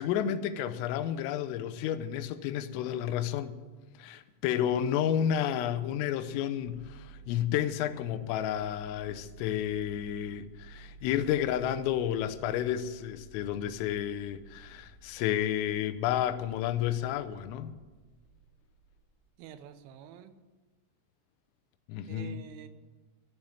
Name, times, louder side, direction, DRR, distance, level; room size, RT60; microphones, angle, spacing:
voice 1, 0.0-3.6 4.0-17.7 21.9-22.4, left 10 dB, 85° left, 3.4 m, -31 dB
sound 1, 6.6-19.3, right 4 dB, 25° right, 1.6 m, -54 dB
voice 2, 19.4-20.3 22.1-22.7, right 9 dB, 80° right, 3.2 m, -47 dB
14.0 x 7.3 x 9.4 m
omnidirectional pair, 5.8 m